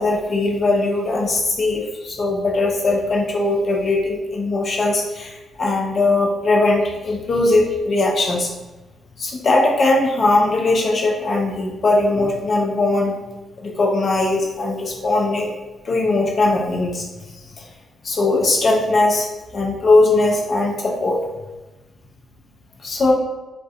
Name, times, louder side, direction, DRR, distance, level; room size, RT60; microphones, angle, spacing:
voice 1, 0.0-8.5 9.2-13.2 13.6-15.5 15.8-17.1 17.6-17.7 18.0-21.3 22.8-23.1, left 2 dB, 45° left, -2 dB, 0.5 m, -19 dB
2.4 x 2.1 x 2.5 m, 1.1 s
figure-of-eight pair, 40°, 0 cm